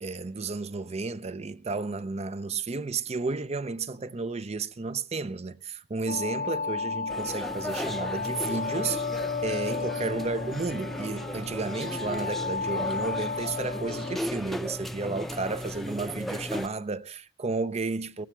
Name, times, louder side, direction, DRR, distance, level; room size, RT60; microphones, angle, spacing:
voice 1, 0.0-18.3, right 3 dB, 35° right, 0.6 m, -32 dB
sound 1, 6.1-14.2, left 4 dB, 45° left, 0.6 m, -33 dB
sound 2, 7.1-16.7, equal, ahead, 0.7 m, -36 dB
17.0 x 15.0 x 3.3 m
head